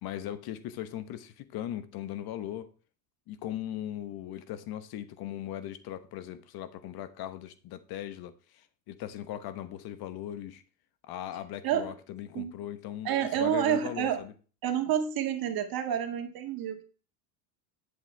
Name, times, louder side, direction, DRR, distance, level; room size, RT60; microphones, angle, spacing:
voice 1, 0.0-2.7 3.3-10.6 11.0-13.1 13.4-14.3, left 11 dB, 50° left, 1.1 m, -39 dB
voice 2, 11.6-11.9 12.3-12.6 13.0-14.2 14.6-16.8, right 9 dB, 45° right, 1.9 m, -29 dB
9.7 x 8.3 x 3.4 m
supercardioid pair, 100°, 48 cm